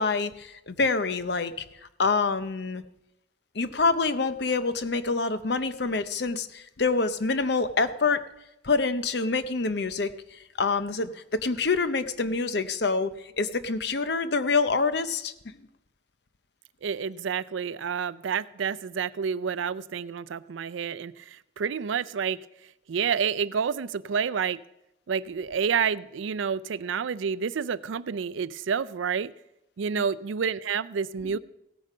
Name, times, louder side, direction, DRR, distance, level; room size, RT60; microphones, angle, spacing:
voice 1, 0.0-1.7 2.0-2.8 3.5-8.2 8.6-15.3 29.9-30.0, left 4 dB, 60° left, 12 dB, 0.7 m, -26 dB
voice 2, 16.8-22.4 22.9-24.6 25.1-29.3 29.8-31.4, right 6 dB, 80° right, 17 dB, 0.4 m, -29 dB
16.5 x 8.9 x 5.5 m, 0.87 s
head